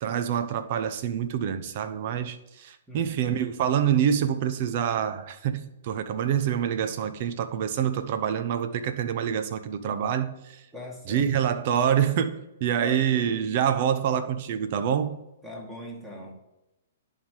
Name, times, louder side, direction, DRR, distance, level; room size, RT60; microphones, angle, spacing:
voice 1, 0.0-10.6 11.1-15.2, right 9 dB, 50° right, 10 dB, 0.9 m, -26 dB
voice 2, 2.9-3.4 10.7-11.3 12.8-13.3 15.4-16.3, left 1 dB, 5° right, -1 dB, 2.1 m, -40 dB
10.5 x 3.7 x 6.6 m, 0.95 s
hypercardioid pair, 130°, 0 cm